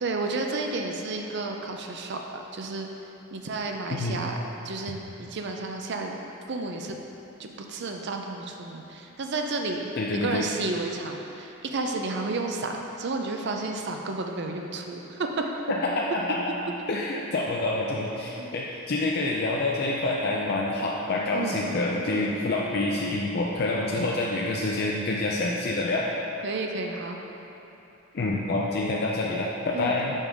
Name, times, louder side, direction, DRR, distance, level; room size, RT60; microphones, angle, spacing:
voice 1, 0.0-2.9 3.3-4.4 4.6-6.2 6.5-7.0 7.4-15.5 17.2-17.3 18.4-18.5 21.3-21.6 22.1-22.4 26.4-27.2 29.7-30.0, right 3 dB, 55° right, 2 dB, 0.5 m, -32 dB
voice 2, 3.9-4.3 10.0-10.5 15.7-26.1 28.1-30.1, left 2 dB, 50° left, -3 dB, 0.5 m, -27 dB
5.3 x 5.3 x 4.8 m, 3.0 s
head